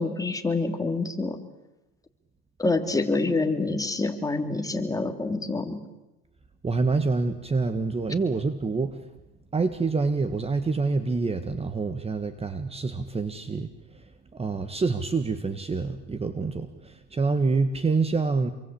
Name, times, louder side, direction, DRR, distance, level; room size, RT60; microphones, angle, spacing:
voice 1, 0.0-1.4 2.6-5.9, left 3 dB, 10° left, 5 dB, 3.1 m, -27 dB
voice 2, 6.6-9.1 9.5-18.5, right 4 dB, 20° right, 10 dB, 1.7 m, -27 dB
28.0 x 23.5 x 8.7 m, 0.97 s
supercardioid pair, 110°, 30 cm